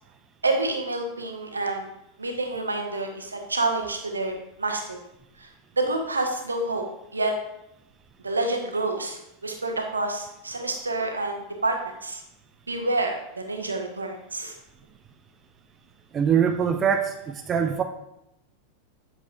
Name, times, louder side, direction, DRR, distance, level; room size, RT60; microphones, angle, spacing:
voice 1, 0.4-1.8 2.2-4.3 4.6-5.0 5.4-5.5 5.8-6.8 7.1-7.3 8.2-11.8 12.0-12.2 12.7-14.6, right 2 dB, 75° right, 3 dB, 1.1 m, -28 dB
voice 2, 16.1-17.8, right 7 dB, 25° right, 7 dB, 0.5 m, -23 dB
8.1 x 6.4 x 2.5 m, 0.82 s
figure-of-eight pair, 90°, 0 cm